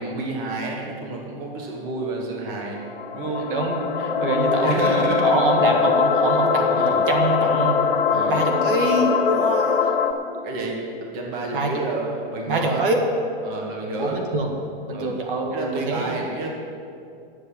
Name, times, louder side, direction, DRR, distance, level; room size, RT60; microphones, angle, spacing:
voice 1, 0.0-2.8 3.1-3.5 4.5-5.8 6.7-7.0 8.1-8.4 10.4-12.9 13.4-14.2 14.9-15.1 15.5-16.5, right 2 dB, 30° right, 0 dB, 1.7 m, -30 dB
sound 1, 2.7-10.1, left 6 dB, 70° left, 1.4 m, -22 dB
voice 2, 3.4-8.0 8.3-9.9 11.5-11.7 12.5-13.0 14.0-14.5 14.9-16.2, right 2 dB, 60° right, 2 dB, 1.8 m, -25 dB
9.9 x 7.5 x 8.6 m, 2.5 s
hypercardioid pair, 155°, 31 cm